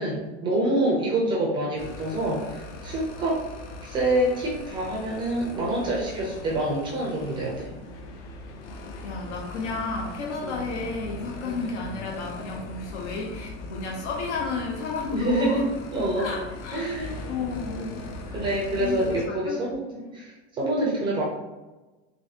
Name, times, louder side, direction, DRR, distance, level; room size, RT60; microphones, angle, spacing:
voice 1, 0.0-3.4 3.8-7.7 10.4-10.6 11.5-11.6 15.1-15.6 15.9-16.3 16.7-17.1 17.7-17.9 18.3-19.8 20.1-21.2, right 1 dB, 15° right, -4 dB, 0.4 m, -26 dB
sound 1, 1.8-19.3, left 2 dB, 55° left, 0.6 m, -40 dB
voice 2, 9.0-15.7 16.2-16.9 17.3-18.1 18.8-20.1, left 3 dB, 85° left, 0 dB, 0.9 m, -32 dB
4.0 x 2.7 x 2.7 m, 1.2 s
supercardioid pair, 165°, 34 cm